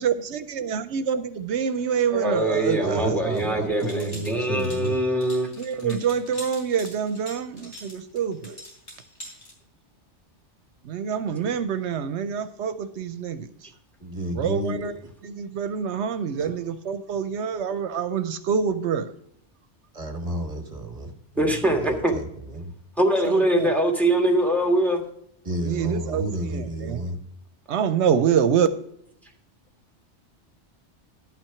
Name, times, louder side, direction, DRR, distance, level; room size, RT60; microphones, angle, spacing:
voice 1, 0.0-3.6 5.6-8.6 10.8-13.7 14.3-14.9 15.2-19.1 23.2-23.7 25.6-26.3 26.5-27.0 27.7-28.7, right 7 dB, 80° right, 11 dB, 0.9 m, -26 dB
voice 2, 2.1-5.5 5.8-6.0 11.4-11.5 21.4-22.1 23.0-25.0, right 1 dB, ahead, 3 dB, 1.6 m, -23 dB
voice 3, 2.8-5.0 14.0-15.1 16.4-16.5 19.9-22.7 25.4-27.2, right 1 dB, 35° right, 6 dB, 1.4 m, -31 dB
sound 1, 3.3-9.5, equal, 80° left, 3.5 m, -43 dB
11.5 x 6.0 x 5.7 m, 0.71 s
omnidirectional pair, 1.2 m